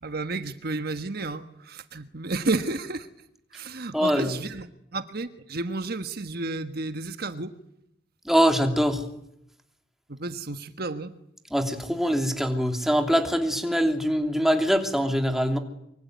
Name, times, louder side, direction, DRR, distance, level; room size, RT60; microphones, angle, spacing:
voice 1, 0.0-3.1 3.5-7.5 10.1-11.1, right 3 dB, 55° right, 9 dB, 1.4 m, -32 dB
voice 2, 3.9-4.3 8.2-9.0 11.5-15.6, equal, ahead, 5 dB, 3.0 m, -23 dB
25.0 x 24.5 x 9.4 m, 0.77 s
head